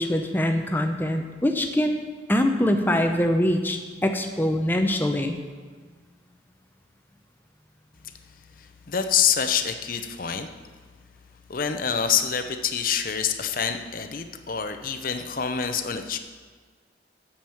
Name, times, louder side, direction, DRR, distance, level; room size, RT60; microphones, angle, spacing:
voice 1, 0.0-2.0 2.3-5.4, left 1 dB, 10° left, 5 dB, 0.7 m, -23 dB
voice 2, 8.6-10.5 11.5-16.2, left 7 dB, 50° left, 8 dB, 0.6 m, -26 dB
7.7 x 7.2 x 7.1 m, 1.5 s
head